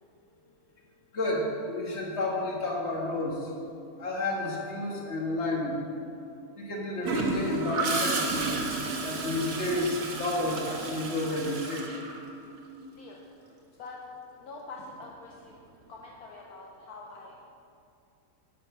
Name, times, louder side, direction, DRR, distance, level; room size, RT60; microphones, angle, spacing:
voice 1, 1.1-3.5 4.0-5.8 6.6-11.9, left 1 dB, 45° left, -2 dB, 1.9 m, -31 dB
Gurgling / Toilet flush, 7.0-12.8 14.8-15.0, right 3 dB, 60° right, 1.4 m, -32 dB
voice 2, 13.0-13.5 13.8-14.0 14.4-15.5 15.9-17.5, left 3 dB, 70° left, -2 dB, 1.3 m, -45 dB
11.5 x 6.0 x 5.6 m, 2.5 s
omnidirectional pair, 1.7 m